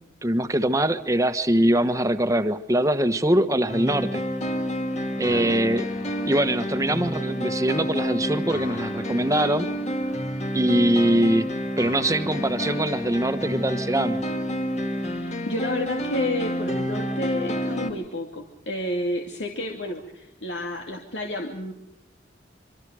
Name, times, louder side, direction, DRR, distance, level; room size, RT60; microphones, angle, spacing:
voice 1, 0.2-4.2 5.2-5.8 6.2-9.7 10.5-11.5 11.8-14.2, right 1 dB, 20° right, 10 dB, 1.3 m, -22 dB
sound 1, 3.7-17.9, equal, 40° left, 2.4 m, -29 dB
voice 2, 5.3-5.6 14.9-21.7, left 1 dB, 80° left, 2 dB, 2.6 m, -31 dB
26.0 x 24.5 x 5.0 m, 0.87 s
head